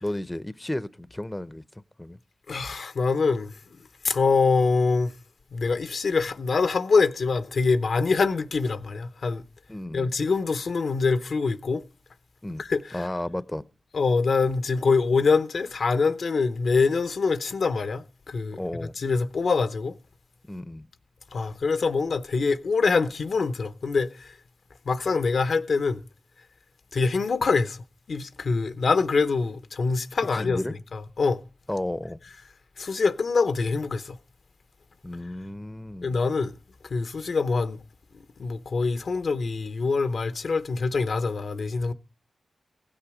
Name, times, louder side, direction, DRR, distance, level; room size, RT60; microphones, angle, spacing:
voice 1, 0.0-1.6 2.0-2.2 9.7-10.1 12.4-12.6 12.9-13.6 18.5-18.9 20.5-20.9 30.3-30.8 31.7-32.2 35.0-36.2, left 1 dB, 15° left, 0.7 m, -33 dB
voice 2, 2.5-5.1 5.5-9.4 9.9-11.8 12.6-13.1 13.9-18.6 19.0-19.9 21.3-24.3 24.9-26.0 26.9-30.6 30.9-31.4 32.8-34.2 36.0-36.5 36.9-37.8 38.4-41.9, left 4 dB, 75° left, 0.8 m, -24 dB
15.5 x 9.0 x 4.9 m
cardioid pair, 50°, 0 cm